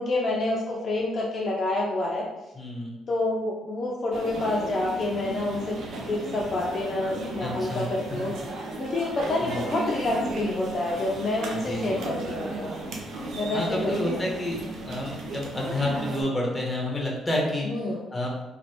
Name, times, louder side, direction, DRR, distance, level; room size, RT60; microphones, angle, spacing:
voice 1, 0.0-2.2 3.1-5.8 6.1-8.3 8.8-12.7 13.3-13.6 14.1-14.2 17.7-18.0, left 2 dB, 50° left, -3 dB, 0.5 m, -28 dB
voice 2, 2.5-2.9 7.4-7.9 9.4-9.7 11.5-11.8 13.5-18.3, left 1 dB, 15° left, -2 dB, 0.9 m, -29 dB
sound 1, 4.1-16.2, right 2 dB, 75° right, 0.5 m, -35 dB
3.1 x 2.5 x 2.8 m, 1.0 s
cardioid pair, 90°, 0 cm